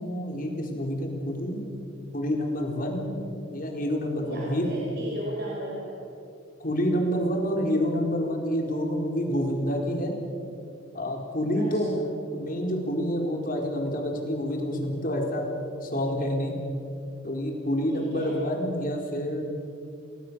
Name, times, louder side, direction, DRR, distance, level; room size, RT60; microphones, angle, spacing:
voice 1, 0.0-1.7 2.1-3.2 3.5-4.7 6.6-10.2 10.9-11.9 12.3-15.4 15.8-16.6 17.2-19.4, equal, 45° left, 1 dB, 4.4 m, -28 dB
voice 2, 4.2-6.0 11.5-11.9 17.9-18.4, equal, 55° right, -4 dB, 4.9 m, -35 dB
30.0 x 19.5 x 7.0 m, 2.6 s
head